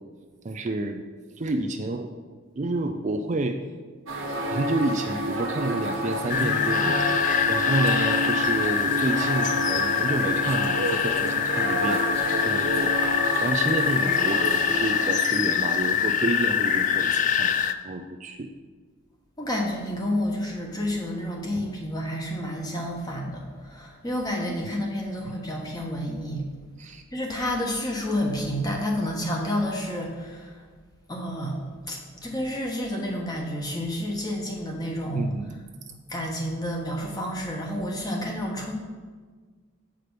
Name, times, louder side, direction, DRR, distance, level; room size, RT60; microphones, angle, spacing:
voice 1, 0.4-1.0 1.4-2.1 2.6-3.6 4.5-7.2 7.5-12.0 12.4-12.9 13.4-17.5 17.8-18.5 21.6-21.7 25.2-25.3 26.8-27.0 35.1-35.5, right 2 dB, 35° right, 5 dB, 0.4 m, -29 dB
sound 1, 4.1-15.1, right 1 dB, 80° right, 1.6 m, -29 dB
sound 2, 6.3-17.7, left 8 dB, 35° left, 0.3 m, -24 dB
voice 2, 19.4-26.4 27.1-30.4 31.1-31.6 31.9-35.3 36.1-38.7, equal, 20° left, 0 dB, 1.2 m, -30 dB
8.0 x 5.0 x 5.9 m, 1.5 s
head